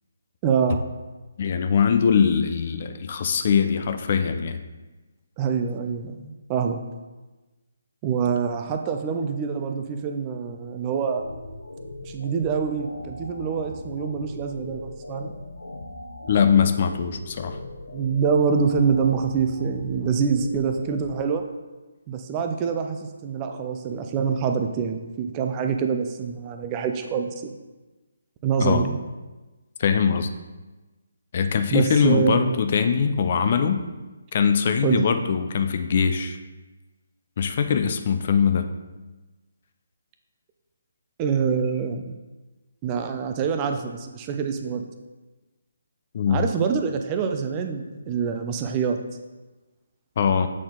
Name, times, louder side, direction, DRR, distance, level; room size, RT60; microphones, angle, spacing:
voice 1, 0.4-0.9 5.4-6.8 8.0-11.2 12.0-15.3 17.9-21.4 22.1-27.5 28.4-29.0 31.7-32.6 34.8-35.0 41.2-42.0 42.8-44.8 46.3-49.0, right 6 dB, 25° right, 5 dB, 0.5 m, -25 dB
voice 2, 1.4-4.6 16.3-17.6 28.6-28.8 29.8-30.3 31.3-33.8 34.3-36.4 37.4-38.7 46.1-46.5 50.2-50.5, left 6 dB, 45° left, 8 dB, 0.5 m, -22 dB
sound 1, 11.1-21.1, left 2 dB, 70° left, 0.8 m, -39 dB
7.5 x 4.3 x 3.8 m, 1.2 s
figure-of-eight pair, 140°, 0 cm